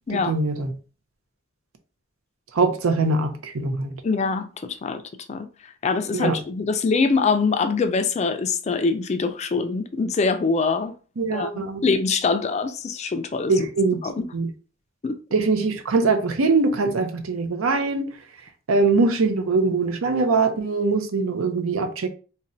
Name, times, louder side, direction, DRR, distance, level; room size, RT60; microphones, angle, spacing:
voice 1, 0.1-0.7 2.5-3.9 6.1-6.4 11.2-11.8 13.5-14.0 14.3-14.5 15.3-18.1 18.7-22.1, right 3 dB, 85° right, 0.6 m, -22 dB
voice 2, 4.0-5.0 5.3-5.5 5.8-10.9 11.3-13.5 14.0-14.3 15.0-15.2, left 4 dB, 35° left, 0.3 m, -24 dB
4.0 x 2.1 x 2.5 m
head